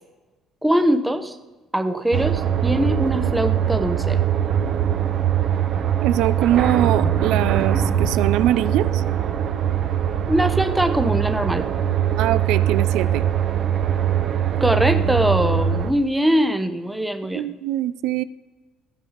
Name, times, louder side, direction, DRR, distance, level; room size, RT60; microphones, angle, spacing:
voice 1, 0.6-1.3 1.7-4.2 10.3-11.7 14.6-17.5, right 1 dB, 5° right, 8 dB, 0.7 m, -22 dB
sound 1, 2.1-15.9, right 9 dB, 50° right, 0.8 m, -22 dB
voice 2, 6.0-9.0 12.2-13.2 17.3-18.2, right 13 dB, 80° right, 15 dB, 0.5 m, -22 dB
15.0 x 5.3 x 5.8 m, 1.2 s
cardioid pair, 150°, 0 cm